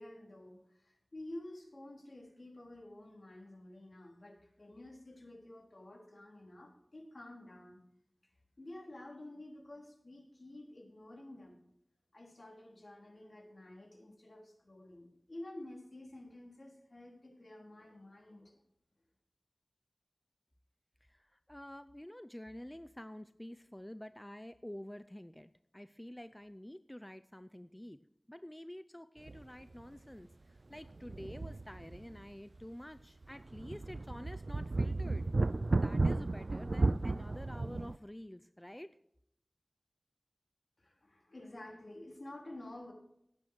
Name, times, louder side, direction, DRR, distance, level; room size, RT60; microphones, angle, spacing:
voice 1, 0.0-7.8 8.6-11.6 12.1-18.6 40.8-42.9, left 1 dB, 65° left, 0 dB, 3.6 m, -51 dB
voice 2, 21.0-28.0 28.3-35.3 35.7-38.9, left 1 dB, 15° left, 11 dB, 0.5 m, -49 dB
sound 1, 29.3-29.4 29.8-29.9 30.8-32.2 32.6-32.7 33.2-38.0, right 2 dB, 70° right, 0.3 m, -34 dB
16.5 x 8.9 x 4.6 m, 0.75 s
wide cardioid pair, 50°, 0 cm